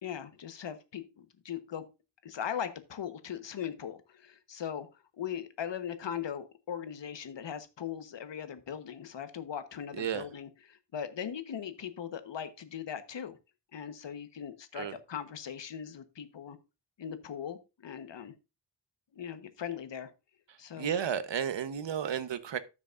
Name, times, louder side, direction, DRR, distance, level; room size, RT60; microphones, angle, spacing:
voice 1, 0.0-1.9 2.2-13.4 13.7-16.6 17.0-18.3 19.1-20.1 20.6-20.9, left 8 dB, 70° left, 1.2 m, -39 dB
voice 2, 20.8-22.6, right 8 dB, 75° right, 1.1 m, -32 dB
15.0 x 6.1 x 2.5 m
wide cardioid pair, 115°, 44 cm